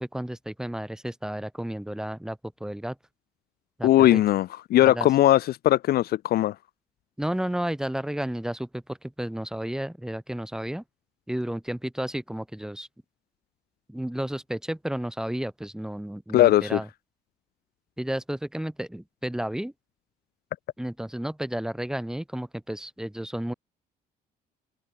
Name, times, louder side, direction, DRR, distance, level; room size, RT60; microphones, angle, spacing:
voice 1, 0.0-3.0 3.8-4.2 4.8-5.1 7.2-10.8 11.3-12.9 13.9-16.9 18.0-19.7 20.8-23.5, right 1 dB, 5° right, 8.0 m, -32 dB
voice 2, 3.8-6.5 16.3-16.8, left 14 dB, 65° left, 1.1 m, -20 dB
open air
cardioid pair, 110°, 17 cm